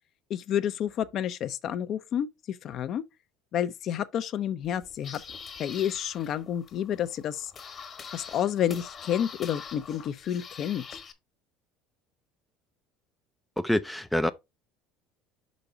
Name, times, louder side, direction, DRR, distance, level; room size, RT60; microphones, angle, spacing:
voice 1, 0.3-3.0 3.5-5.2 5.6-7.5 8.1-11.0, left 10 dB, 45° left, 0.6 m, -30 dB
sound 1, 4.6-11.1, left 6 dB, 30° left, 1.1 m, -44 dB
voice 2, 13.6-14.3, left 1 dB, 5° left, 0.4 m, -26 dB
5.9 x 5.2 x 3.9 m
cardioid pair, 130°, 0 cm